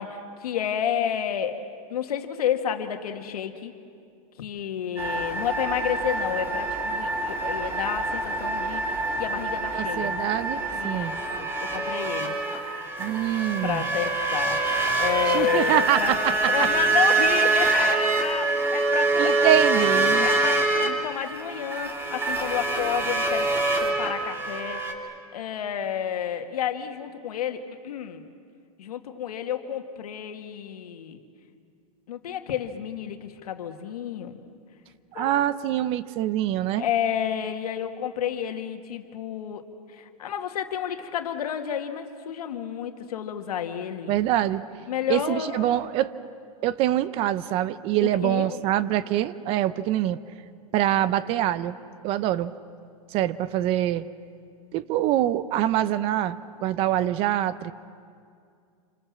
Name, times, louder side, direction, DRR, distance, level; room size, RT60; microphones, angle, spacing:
voice 1, 0.0-1.6 1.9-3.7 4.4-10.1 10.7-12.4 13.6-19.8 20.1-23.5 23.8-28.2 28.8-31.2 32.1-34.4 35.1-35.4 36.8-44.1 44.9-45.9 48.0-48.6, left 9 dB, 85° left, 6 dB, 2.1 m, -30 dB
sound 1, 5.0-24.9, right 3 dB, 10° right, 3.0 m, -25 dB
voice 2, 9.8-11.2 13.0-13.8 15.3-16.7 19.2-20.3 35.1-36.9 44.1-44.6 45.1-46.1 46.6-50.2 50.7-51.8 52.0-52.5 53.1-54.0 54.7-57.7, right 12 dB, 30° right, 16 dB, 0.7 m, -25 dB
28.0 x 26.5 x 7.5 m, 2.3 s
supercardioid pair, 155°, 19 cm